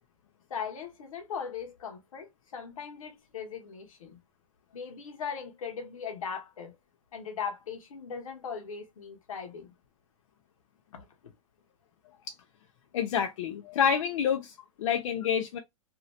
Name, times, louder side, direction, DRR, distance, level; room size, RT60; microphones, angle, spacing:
voice 1, 0.5-4.2 4.7-6.8 7.1-9.7 10.9-11.1, left 6 dB, 85° left, 1.1 m, -39 dB
voice 2, 12.9-15.6, left 8 dB, 70° left, 0.6 m, -28 dB
2.8 x 2.6 x 3.0 m
hypercardioid pair, 150°, 17 cm